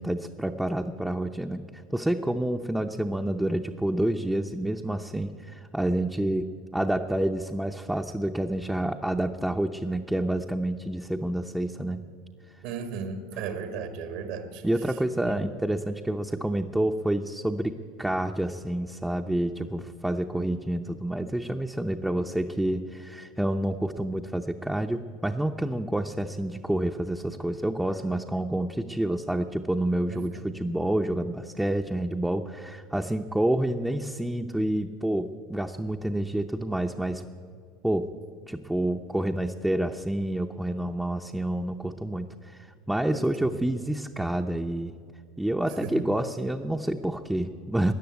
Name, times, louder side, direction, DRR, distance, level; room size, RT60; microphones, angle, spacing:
voice 1, 0.0-12.0 14.6-37.2 37.8-38.1 38.5-44.9 45.4-47.9, right 1 dB, 5° right, 3 dB, 0.6 m, -28 dB
voice 2, 12.6-14.6 15.3-15.5 30.1-30.6 43.1-43.6 45.7-46.3, right 5 dB, 70° right, 8 dB, 1.7 m, -36 dB
14.0 x 9.6 x 9.4 m, 2.2 s
supercardioid pair, 110°, 0 cm